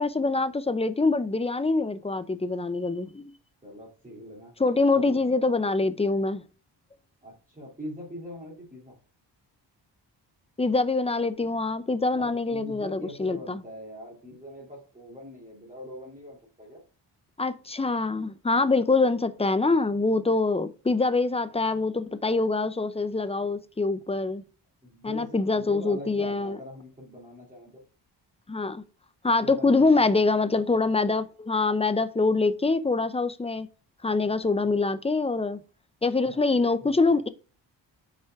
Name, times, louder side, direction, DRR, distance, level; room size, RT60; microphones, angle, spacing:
voice 1, 0.0-3.3 4.6-6.4 10.6-13.6 17.4-24.4 25.0-26.6 28.5-28.8 29.2-33.7 34.0-35.6 36.0-37.3, left 3 dB, 15° left, 0.6 m, -25 dB
voice 2, 3.6-4.5 4.9-5.2 7.2-8.9 12.1-16.8 24.8-27.8 29.4-30.2 34.3-34.7 36.3-36.4 36.8-37.0, equal, 20° right, 2.7 m, -43 dB
5.7 x 4.9 x 5.7 m
wide cardioid pair, 100°, 44 cm